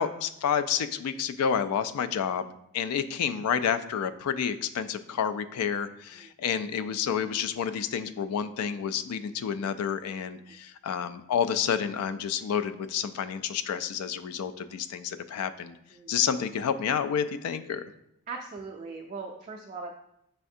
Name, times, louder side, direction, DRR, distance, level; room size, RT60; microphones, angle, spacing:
voice 1, 0.0-15.8 16.1-17.8, left 7 dB, 85° left, 12 dB, 0.3 m, -29 dB
voice 2, 18.3-19.9, right 4 dB, 35° right, 1 dB, 0.3 m, -39 dB
5.7 x 3.3 x 2.7 m, 0.78 s
head